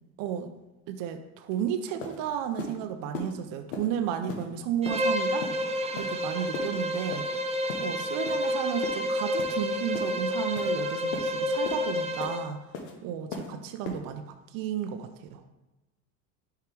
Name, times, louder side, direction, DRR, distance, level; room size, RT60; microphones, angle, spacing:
voice 1, 0.2-0.5 0.9-5.5 5.9-7.3 7.8-12.6 13.0-15.4, right 9 dB, 65° right, 7 dB, 0.6 m, -33 dB
sound 1, 1.5-1.6 2.0-2.2 2.6-2.7 3.1-3.3 3.7-3.9 4.3-4.4 4.8-5.0 5.4-5.6 6.0-6.2 6.5-6.7 7.1-7.3 7.7-7.9 8.3-8.4 8.8-9.0 9.4-9.6 9.9-10.1 10.6-10.7 11.1-11.3 11.6-11.8 12.2-12.4 12.7-12.9 13.3-13.5 13.8-14.0, left 4 dB, 90° left, 1.1 m, -37 dB
Bowed string instrument, 4.8-12.5, left 1 dB, 15° right, 0.6 m, -29 dB
5.0 x 4.7 x 4.5 m, 1.1 s
supercardioid pair, 105°, 37 cm